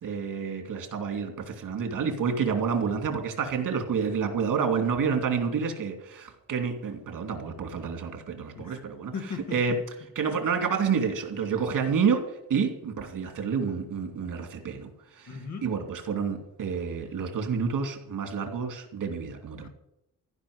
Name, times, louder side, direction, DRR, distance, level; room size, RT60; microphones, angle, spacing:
voice 1, 0.0-9.1 9.5-9.8 10.2-12.2 12.5-14.9 15.2-15.3 15.6-19.7, right 6 dB, 70° right, 2.7 m, -29 dB
voice 2, 9.1-9.8 15.3-15.7 19.6-19.7, left 5 dB, 60° left, 1.8 m, -37 dB
15.5 x 5.8 x 9.6 m
wide cardioid pair, 155°, 32 cm